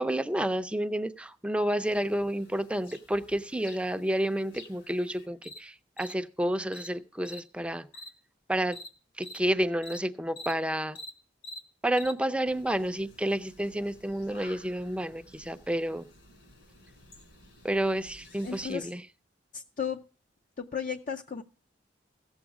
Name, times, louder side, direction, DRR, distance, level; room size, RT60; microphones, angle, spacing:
voice 1, 0.0-7.9 8.5-8.8 9.2-11.0 11.8-16.1 17.6-19.0, right 1 dB, 5° right, 11 dB, 0.5 m, -30 dB
sound 1, 1.8-5.6 6.0-6.1 6.7-6.9 7.2-7.4 7.9-8.1 8.7-8.9 9.2-9.4 9.8-10.0 10.4-10.5 11.0-11.1 11.4-11.6 12.0-12.1 12.5-18.7, left 1 dB, 75° left, 3.3 m, -49 dB
voice 2, 18.4-18.9 19.5-20.0 20.6-21.4, left 7 dB, 45° left, 6 dB, 0.5 m, -34 dB
16.0 x 7.2 x 4.8 m, 0.38 s
head